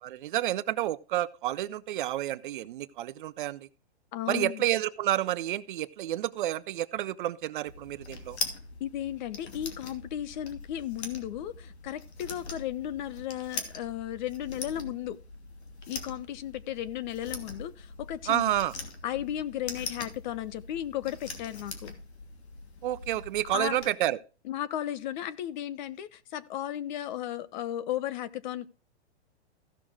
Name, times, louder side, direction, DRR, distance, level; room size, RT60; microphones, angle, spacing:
voice 1, 0.0-3.7 4.3-8.4 18.3-18.7 22.8-24.2, right 13 dB, 50° right, 0.7 m, -30 dB
voice 2, 4.1-4.6 8.8-15.2 15.9-18.5 19.0-21.9 23.5-23.8 24.4-28.7, left 12 dB, 45° left, 0.9 m, -35 dB
sound 1, 7.7-23.9, left 3 dB, 75° left, 2.6 m, -42 dB
15.5 x 6.3 x 3.5 m
hypercardioid pair, 135°, 33 cm